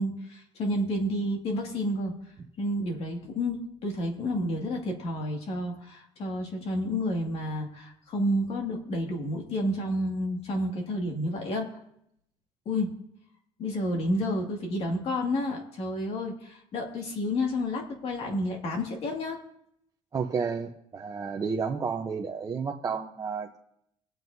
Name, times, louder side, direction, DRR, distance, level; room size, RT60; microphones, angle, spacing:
voice 1, 0.0-2.1 2.6-11.7 12.7-12.9 13.6-19.4, left 1 dB, 60° left, 1 dB, 2.1 m, -30 dB
voice 2, 20.1-23.6, right 5 dB, 30° right, 0 dB, 0.8 m, -31 dB
22.0 x 7.7 x 2.7 m, 0.76 s
cardioid pair, 115°, 12 cm